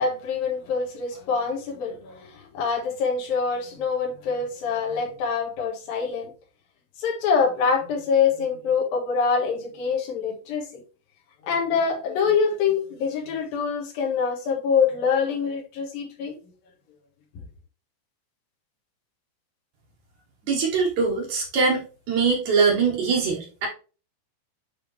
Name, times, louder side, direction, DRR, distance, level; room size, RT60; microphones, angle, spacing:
voice 1, 0.0-6.3 7.0-10.7 11.4-16.3, left 5 dB, 75° left, 0 dB, 3.2 m, -25 dB
voice 2, 20.4-23.7, right 5 dB, 60° right, 0 dB, 2.4 m, -22 dB
9.1 x 3.5 x 3.2 m, 0.35 s
omnidirectional pair, 4.2 m